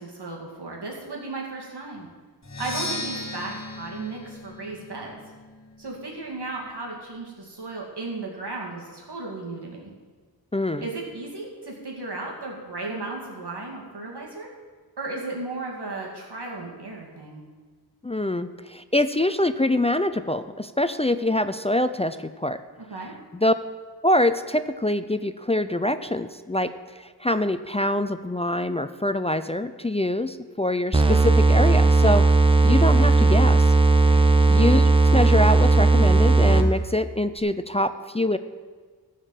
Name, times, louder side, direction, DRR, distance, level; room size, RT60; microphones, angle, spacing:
voice 1, 0.0-2.1 2.6-5.2 5.8-9.9 10.8-14.5 15.0-17.4 22.8-23.1 34.0-34.3, right 3 dB, 85° right, -2 dB, 2.5 m, -35 dB
Percussion, 2.4-6.2, left 2 dB, 45° left, 1.5 m, -36 dB
voice 2, 10.5-10.8 18.0-22.6 23.3-23.5 24.0-32.2 32.6-33.7 34.5-38.4, left 1 dB, 15° left, 11 dB, 0.4 m, -24 dB
sound 1, 30.9-36.8, right 3 dB, 15° right, 0.8 m, -17 dB
14.5 x 5.1 x 7.4 m, 1.4 s
wide cardioid pair, 65°, 39 cm